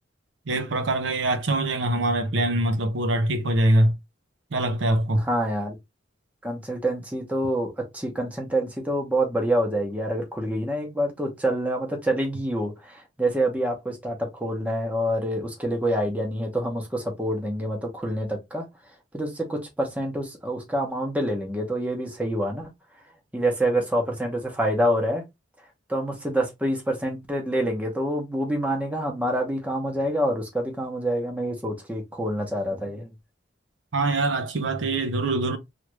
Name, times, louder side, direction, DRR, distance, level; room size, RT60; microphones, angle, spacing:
voice 1, 0.5-3.9 4.5-5.3 33.9-35.6, right 1 dB, 75° right, 0.6 m, -23 dB
voice 2, 5.1-5.8 6.4-18.7 19.1-22.7 23.3-25.2 25.9-33.1, right 1 dB, 10° right, 0.9 m, -27 dB
3.2 x 2.4 x 3.1 m
head